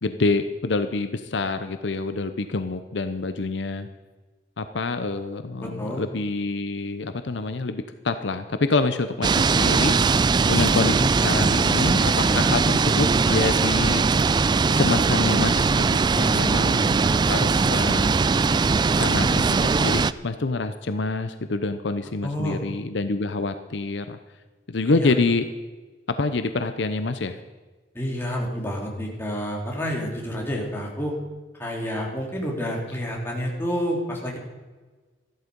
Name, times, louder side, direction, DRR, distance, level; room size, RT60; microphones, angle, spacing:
voice 1, 0.0-3.9 4.6-14.0 14.8-18.3 19.0-24.2 24.7-25.5 26.2-27.4, left 3 dB, 70° left, 9 dB, 0.7 m, -27 dB
voice 2, 5.6-6.0 12.2-12.5 22.2-22.6 24.9-25.1 27.9-31.1 31.6-34.4, equal, 15° left, -2 dB, 2.9 m, -29 dB
sound 1, 9.2-20.1, right 4 dB, 25° right, 0.3 m, -20 dB
14.0 x 12.0 x 5.3 m, 1.3 s
head